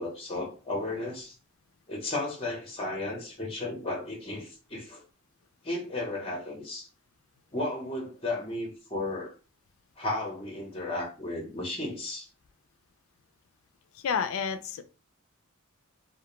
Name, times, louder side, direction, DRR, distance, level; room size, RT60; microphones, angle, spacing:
voice 1, 0.0-1.3 1.9-5.0 5.6-6.9 7.5-9.3 10.0-12.3, left 2 dB, 25° left, -1 dB, 0.7 m, -34 dB
voice 2, 13.9-14.8, left 6 dB, 70° left, 10 dB, 0.3 m, -30 dB
2.2 x 2.1 x 2.9 m, 0.34 s
head